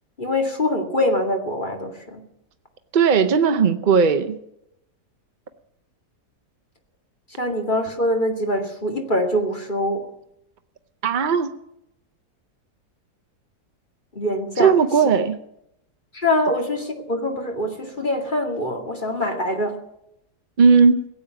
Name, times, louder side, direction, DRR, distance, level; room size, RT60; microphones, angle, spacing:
voice 1, 0.2-2.2 7.4-10.0 14.1-14.7 16.1-19.7, left 1 dB, 30° left, 2 dB, 2.3 m, -24 dB
voice 2, 2.9-4.4 11.0-11.5 14.6-15.4 20.6-21.1, right 5 dB, 45° right, 8 dB, 0.6 m, -17 dB
17.0 x 8.6 x 9.1 m, 0.80 s
omnidirectional pair, 1.7 m